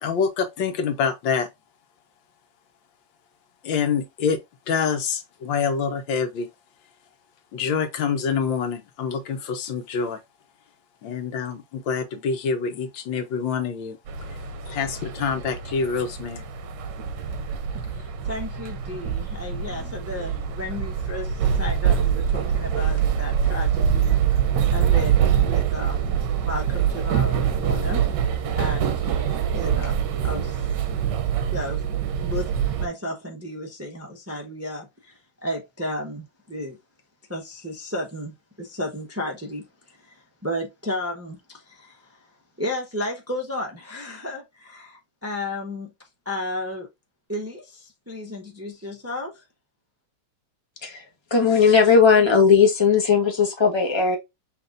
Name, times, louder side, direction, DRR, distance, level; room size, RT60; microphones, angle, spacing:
voice 1, 0.0-1.5 3.6-4.4 4.7-6.5 7.5-10.2 11.0-14.0 14.7-16.4, left 6 dB, 90° left, 1.6 m, -26 dB
sound 1, 14.1-32.9, right 8 dB, 70° right, 1.4 m, -24 dB
voice 2, 17.9-24.1 24.7-28.0 28.5-30.6 31.5-31.8 32.2-32.5 32.8-35.1 35.4-36.8 37.3-40.2 40.4-42.2 42.6-45.9 46.2-46.9 47.3-49.4, left 1 dB, 10° right, 0.7 m, -33 dB
voice 3, 51.3-54.2, left 6 dB, 20° left, 0.9 m, -17 dB
5.8 x 3.4 x 2.5 m
omnidirectional pair, 2.0 m